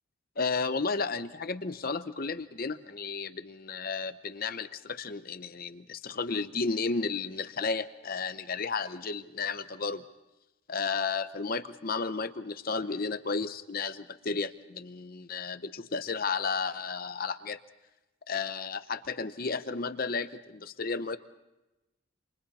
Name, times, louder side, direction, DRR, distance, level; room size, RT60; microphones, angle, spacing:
voice 1, 0.4-10.0 10.7-17.6 18.3-21.2, left 4 dB, 45° left, 12 dB, 0.8 m, -33 dB
29.0 x 26.5 x 4.2 m, 1.0 s
head